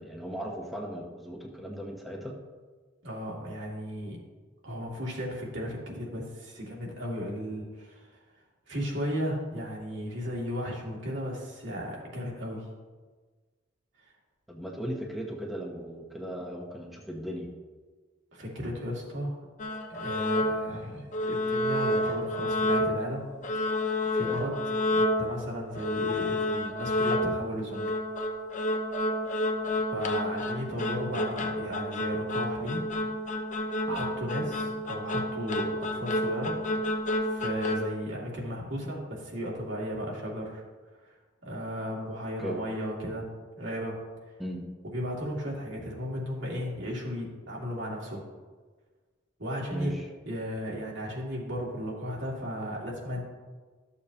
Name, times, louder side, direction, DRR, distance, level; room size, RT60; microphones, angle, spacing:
voice 1, 0.0-2.3 14.5-17.5 24.2-24.4 30.7-30.9 33.9-34.0 42.4-42.6 44.4-44.6 49.7-50.1, equal, ahead, -1 dB, 0.9 m, -37 dB
voice 2, 3.0-4.2 4.6-8.1 8.7-12.7 18.3-19.4 19.9-23.2 23.5-24.5 24.9-27.9 29.9-32.8 33.3-33.4 33.9-36.6 37.2-40.6 41.0-41.1 41.4-43.3 43.5-44.0 44.9-48.2 49.4-49.9 50.2-53.2, equal, 70° right, -3 dB, 2.4 m, -35 dB
sound 1, 19.6-20.8 21.1-23.1 23.4-25.4 25.8-38.0, left 1 dB, 40° left, 0.8 m, -29 dB
13.0 x 6.9 x 2.8 m, 1.4 s
head